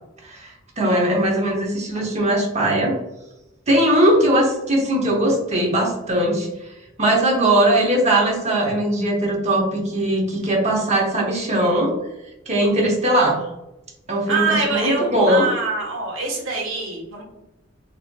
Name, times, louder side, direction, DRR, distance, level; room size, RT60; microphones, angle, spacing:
voice 1, 0.2-3.0 3.7-6.5 7.0-11.9 12.5-13.4 14.1-15.5, right 1 dB, 35° right, 0 dB, 0.8 m, -19 dB
voice 2, 14.3-17.2, right 4 dB, 80° right, -2 dB, 1.2 m, -24 dB
4.1 x 2.7 x 2.2 m, 0.96 s
head